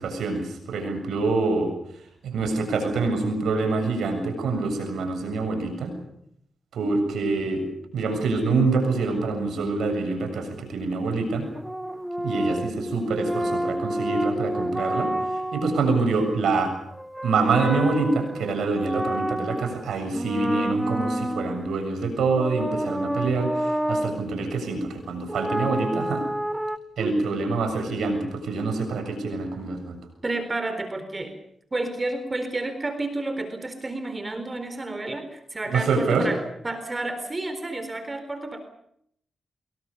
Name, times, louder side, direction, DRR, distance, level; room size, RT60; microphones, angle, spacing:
voice 1, 0.0-1.7 2.2-5.9 6.7-7.7 7.9-11.5 12.2-16.7 17.2-26.2 27.0-30.0 35.7-36.3, right 3 dB, 80° right, 6 dB, 7.2 m, -25 dB
sound 1, 11.5-15.8 16.9-19.8 20.1-21.8 22.3-24.2 25.3-26.8, right 1 dB, 10° right, 1.3 m, -29 dB
voice 2, 30.2-31.3 31.7-38.6, right 2 dB, 30° right, 9 dB, 4.0 m, -31 dB
25.0 x 22.5 x 7.0 m, 0.70 s
cardioid pair, 60°, 0 cm